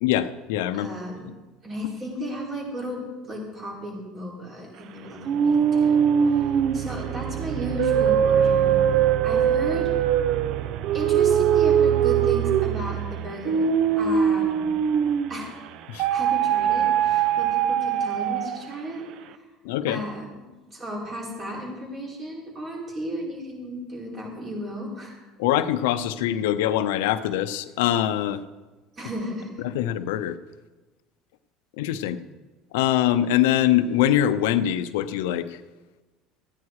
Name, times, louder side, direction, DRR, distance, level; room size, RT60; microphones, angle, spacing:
voice 1, 0.0-0.9 15.9-16.1 19.6-20.0 25.4-28.4 29.6-30.4 31.8-32.2 32.7-35.6, left 11 dB, 85° left, 12 dB, 0.6 m, -23 dB
voice 2, 0.7-1.3 1.6-8.8 9.2-9.9 10.9-13.7 13.9-14.7 15.3-15.5 16.1-19.1 19.3-19.4 19.9-20.2 20.7-25.2 29.0-29.5, equal, 35° right, -3 dB, 5.0 m, -34 dB
sound 1, 5.2-15.5 16.0-18.7, right 8 dB, 60° right, 0.6 m, -22 dB
14.5 x 9.7 x 4.8 m, 1.2 s
supercardioid pair, 100°, 0 cm